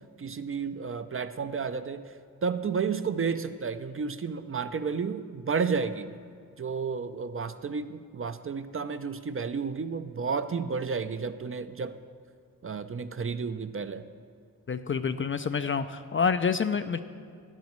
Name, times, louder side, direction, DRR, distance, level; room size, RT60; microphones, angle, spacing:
voice 1, 0.2-2.1 2.4-6.2 6.6-12.0 12.6-14.0, right 5 dB, 35° right, 10 dB, 0.5 m, -32 dB
voice 2, 14.7-17.0, left 6 dB, 35° left, 10 dB, 0.4 m, -27 dB
12.0 x 10.5 x 3.1 m, 2.1 s
cardioid pair, 50°, 38 cm